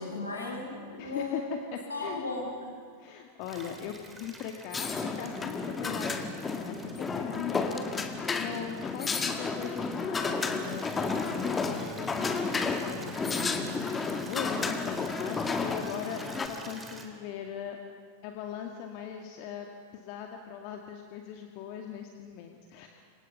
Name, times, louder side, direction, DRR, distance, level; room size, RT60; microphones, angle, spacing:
voice 1, 0.0-1.5 1.9-2.7, left 2 dB, 75° left, -2 dB, 8.0 m, -35 dB
voice 2, 1.0-1.4 1.7-2.2 3.0-17.8 18.2-19.7 19.9-22.9, left 8 dB, 45° left, 3 dB, 1.9 m, -40 dB
Water tap faucet / Liquid, 3.4-17.1, right 2 dB, 10° right, 3.5 m, -49 dB
sound 1, 4.7-16.5, left 4 dB, 15° left, 2.0 m, -32 dB
29.0 x 25.5 x 5.7 m, 2.2 s
figure-of-eight pair, 90°, 0 cm